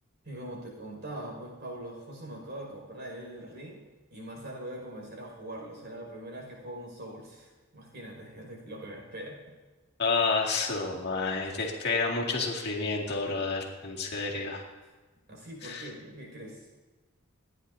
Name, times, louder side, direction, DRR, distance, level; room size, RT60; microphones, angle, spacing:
voice 1, 0.2-3.8 4.1-9.5 15.3-16.7, right 1 dB, 55° right, -1 dB, 5.4 m, -42 dB
voice 2, 10.0-14.6 15.6-15.9, left 4 dB, 55° left, -1 dB, 2.1 m, -30 dB
28.5 x 10.5 x 2.7 m, 1.2 s
head